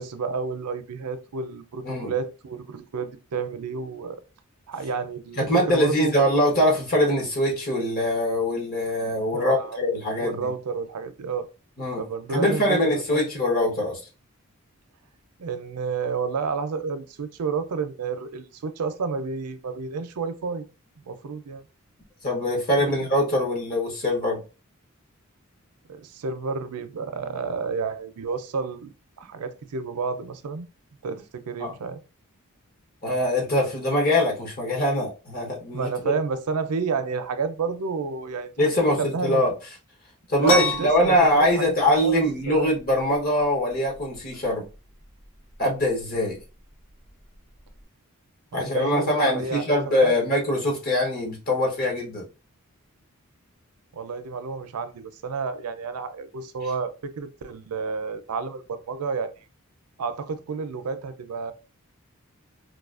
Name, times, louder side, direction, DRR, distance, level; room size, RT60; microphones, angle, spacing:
voice 1, 0.0-4.2 4.7-6.1 9.3-9.8 10.2-11.5 12.0-13.2 15.4-20.6 21.1-21.6 22.8-23.1 25.9-30.7 31.0-32.0 35.7-39.4 40.4-41.7 42.0-42.7 48.5-50.1 53.9-59.3 60.0-61.5, right 5 dB, 90° right, 0.5 m, -30 dB
voice 2, 5.4-10.3 11.8-12.0 12.3-14.0 22.2-24.4 31.6-31.7 33.0-36.1 38.6-39.5 40.3-44.6 45.6-46.4 48.5-52.2, left 1 dB, 40° left, 0.9 m, -23 dB
sound 1, 40.4-47.8, left 1 dB, 70° left, 1.5 m, -32 dB
4.7 x 2.3 x 2.4 m
head